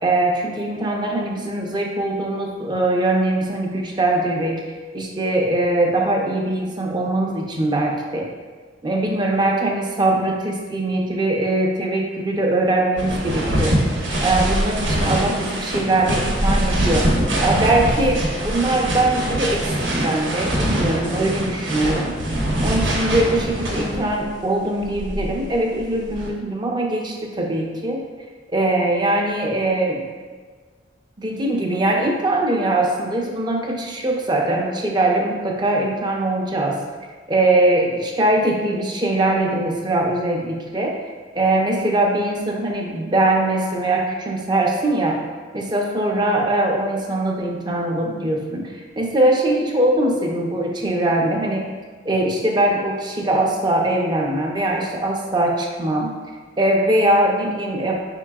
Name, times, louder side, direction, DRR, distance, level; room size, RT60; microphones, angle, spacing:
voice 1, 0.0-4.6 4.9-8.3 8.8-13.8 14.2-17.1 17.4-22.1 22.6-28.0 28.5-30.1 31.2-36.8 37.3-41.0 41.3-45.2 45.5-51.7 52.0-56.1 56.6-57.9, right 1 dB, 25° right, 0 dB, 0.5 m, -21 dB
sound 1, 13.0-24.2 24.8-26.3, right 1 dB, 85° right, 0.9 m, -23 dB
5.4 x 3.7 x 2.3 m, 1.5 s
head